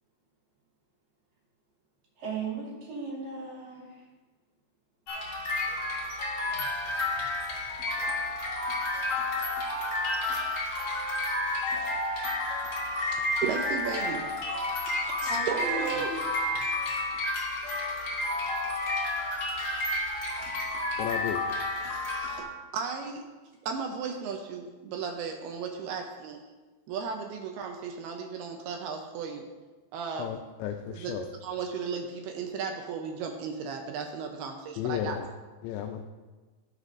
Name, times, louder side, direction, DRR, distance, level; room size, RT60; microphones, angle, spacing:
voice 1, 2.2-4.0 14.9-16.1, right 3 dB, 55° right, -5 dB, 3.4 m, -37 dB
sound 1, 5.1-22.4, left 2 dB, 50° left, 1.9 m, -31 dB
voice 2, 13.1-14.3 15.0-16.1 21.8-22.5 22.7-23.2 23.6-26.4 26.9-29.5 29.9-30.3 30.9-31.1 31.4-35.2, right 6 dB, 80° right, 3 dB, 2.3 m, -35 dB
voice 3, 21.0-21.4 30.2-31.3 34.8-35.3 35.6-36.0, left 10 dB, 85° left, 5 dB, 2.7 m, -33 dB
17.5 x 6.6 x 2.5 m, 1.3 s
omnidirectional pair, 5.2 m